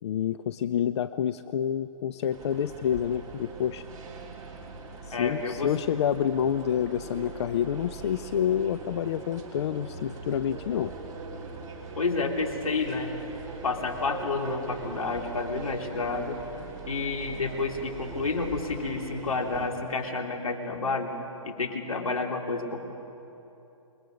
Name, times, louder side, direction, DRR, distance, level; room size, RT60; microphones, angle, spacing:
voice 1, 0.0-3.8 5.1-10.9, left 9 dB, 55° left, 12 dB, 0.6 m, -28 dB
sound 1, 2.3-19.7, right 4 dB, 20° right, 3.3 m, -41 dB
voice 2, 5.1-5.7 12.0-13.1 13.6-16.4 16.9-21.1 21.4-22.9, left 3 dB, 85° left, 2 dB, 3.0 m, -30 dB
27.5 x 21.5 x 5.3 m, 2.9 s
hypercardioid pair, 140°, 17 cm